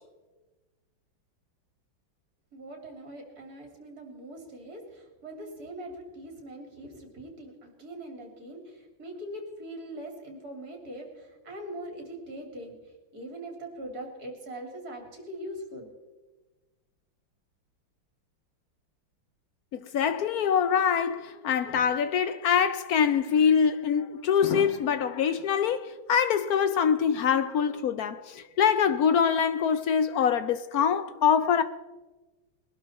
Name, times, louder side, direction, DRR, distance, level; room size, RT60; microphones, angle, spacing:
voice 1, 2.5-8.6 9.0-11.1 11.4-12.7 13.1-15.9, right 1 dB, 50° right, 3.3 m, -41 dB
voice 2, 19.7-31.6, left 7 dB, 75° left, 0.8 m, -24 dB
21.5 x 12.0 x 4.2 m
omnidirectional pair, 2.2 m